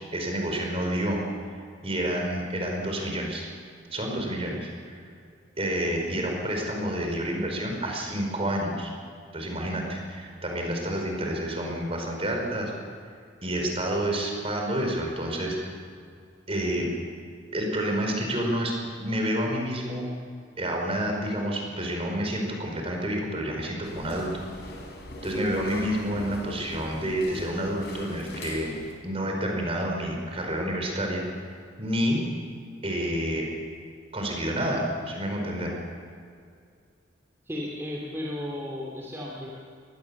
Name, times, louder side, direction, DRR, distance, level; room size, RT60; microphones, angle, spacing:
voice 1, 0.1-1.2 1.8-3.5 3.9-5.0 5.6-8.9 9.3-12.7 13.4-15.7 16.5-16.9 17.5-18.7 19.0-20.1 20.6-24.3 25.2-28.7 29.0-31.2 31.8-32.2 32.8-33.5 34.1-35.7, equal, 30° right, 1 dB, 4.9 m, -29 dB
sound 1, 23.8-28.9, left 1 dB, 55° left, 4.9 m, -41 dB
voice 2, 37.4-39.5, left 1 dB, 15° right, -3 dB, 2.7 m, -34 dB
23.5 x 19.5 x 7.2 m, 2.3 s
head